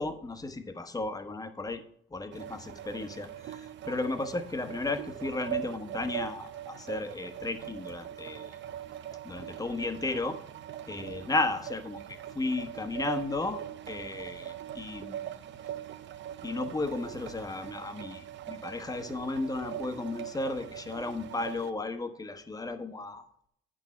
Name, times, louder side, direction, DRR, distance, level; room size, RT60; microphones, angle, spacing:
voice 1, 0.0-1.8 2.1-8.6 9.2-10.4 10.9-15.1 16.4-23.2, left 2 dB, 20° left, 8 dB, 1.0 m, -34 dB
sound 1, 2.3-21.7, right 11 dB, 65° right, 0.7 m, -41 dB
8.8 x 6.3 x 4.3 m, 0.69 s
cardioid pair, 90°, 20 cm